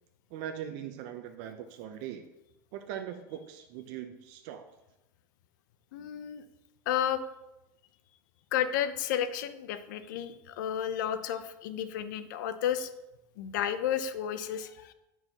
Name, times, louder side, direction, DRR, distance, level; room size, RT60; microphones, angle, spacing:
voice 1, 0.3-2.2 2.7-4.7, right 10 dB, 65° right, 6 dB, 0.6 m, -40 dB
voice 2, 5.9-6.4 6.9-7.2 8.5-12.9 13.4-14.9, left 10 dB, 80° left, 11 dB, 0.6 m, -32 dB
9.5 x 4.6 x 2.9 m, 0.94 s
supercardioid pair, 110°, 10 cm